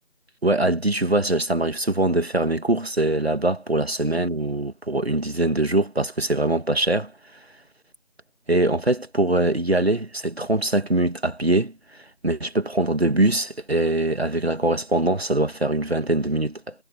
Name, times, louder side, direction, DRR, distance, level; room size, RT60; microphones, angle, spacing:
voice 1, 0.4-7.1 8.5-11.7 12.2-16.7, right 2 dB, 55° right, 2.1 m, -22 dB
figure-of-eight pair, 180°, 38 cm